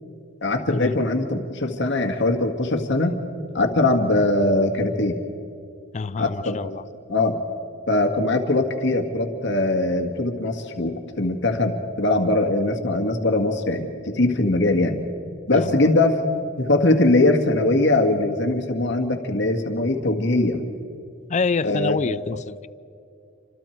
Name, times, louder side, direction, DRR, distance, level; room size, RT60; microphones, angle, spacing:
voice 1, 0.4-3.2 3.5-5.2 6.2-6.6 7.1-7.4 7.9-15.0 15.5-16.2 16.6-20.6 21.6-22.0, left 2 dB, 60° left, 1.9 m, -21 dB
voice 2, 5.9-6.8 15.5-15.8 21.3-22.7, left 4 dB, 35° left, 0.4 m, -26 dB
29.0 x 25.5 x 4.6 m
head